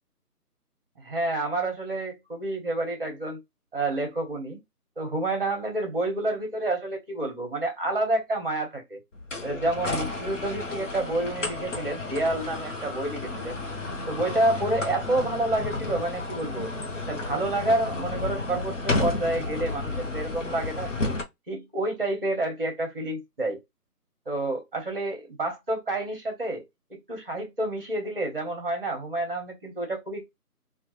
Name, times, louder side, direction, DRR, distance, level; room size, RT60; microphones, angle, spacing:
voice 1, 1.0-3.4 3.7-4.6 5.0-9.0 9.4-13.6 14.1-16.7 17.0-20.9 21.5-23.6 24.3-26.6 26.9-30.3, right 2 dB, 35° right, 1.1 m, -29 dB
sound 1, 9.1-21.2, left 2 dB, 50° left, 0.8 m, -32 dB
3.3 x 2.5 x 2.9 m
figure-of-eight pair, 165°, 47 cm